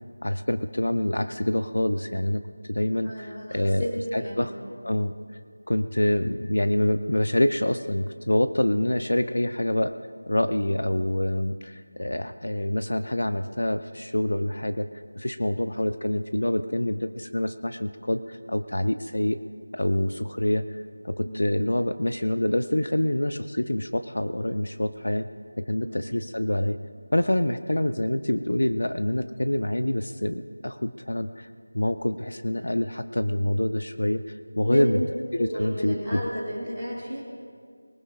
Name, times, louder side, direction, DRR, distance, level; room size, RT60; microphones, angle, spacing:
voice 1, 0.2-4.5 4.8-5.1 5.7-10.0 10.3-14.9 15.1-19.4 19.7-25.3 25.6-26.8 27.1-31.5 31.7-35.0 35.3-36.2, left 1 dB, 80° left, 10 dB, 0.7 m, -26 dB
voice 2, 3.0-4.7 10.7-10.8 21.2-21.4 25.8-25.9 34.6-35.1 35.4-37.2, equal, 5° left, -12 dB, 3.6 m, -32 dB
23.5 x 16.5 x 2.5 m, 2.1 s
figure-of-eight pair, 175°, 0 cm